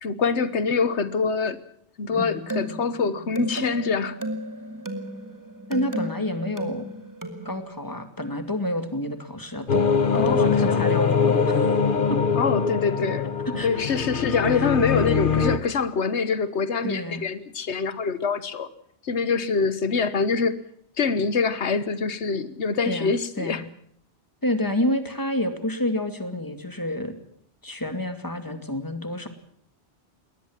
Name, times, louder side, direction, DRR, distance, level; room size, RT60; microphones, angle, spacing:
voice 1, 0.0-1.6 2.0-4.2 10.1-10.9 12.4-13.3 13.6-18.7 19.0-20.6 21.0-23.6, left 5 dB, 90° left, 14 dB, 1.4 m, -25 dB
sound 1, 2.1-7.6, right 1 dB, 15° right, 2.2 m, -34 dB
voice 2, 5.7-6.9 7.4-9.8 10.1-11.6 12.1-12.2 13.5-14.3 14.5-14.7 16.8-17.2 22.9-23.6 24.4-27.1 27.6-29.3, left 1 dB, 20° left, 8 dB, 2.4 m, -29 dB
sound 2, 9.7-15.6, left 5 dB, 50° left, 1.3 m, -22 dB
22.0 x 18.5 x 7.4 m, 0.67 s
omnidirectional pair, 1.1 m